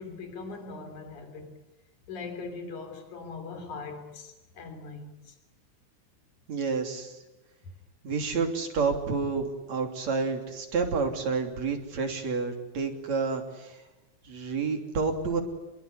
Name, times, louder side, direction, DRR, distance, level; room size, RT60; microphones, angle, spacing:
voice 1, 0.0-1.6 2.1-5.3, left 4 dB, 80° left, 4.8 m, -40 dB
voice 2, 6.5-7.2 8.0-13.8 14.2-15.4, right 4 dB, 65° right, 4.4 m, -29 dB
27.0 x 22.0 x 9.9 m
omnidirectional pair, 3.4 m